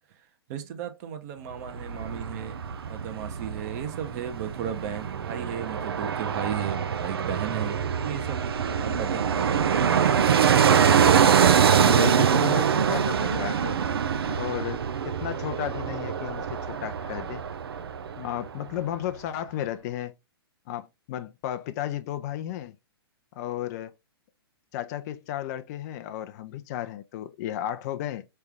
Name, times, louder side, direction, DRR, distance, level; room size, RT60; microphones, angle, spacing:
voice 1, 0.5-2.6 2.9-9.3, right 9 dB, 45° right, 1.1 m, -35 dB
Fixed-wing aircraft airplane, 1.5-18.5 18.8-18.9, right 7 dB, 75° right, 0.6 m, -24 dB
voice 2, 11.7-13.8 14.3-17.4 18.2-20.1 20.7-22.8 23.3-23.9 24.7-28.3, left 12 dB, 40° left, 0.6 m, -34 dB
4.5 x 3.4 x 3.5 m
hypercardioid pair, 120°, 13 cm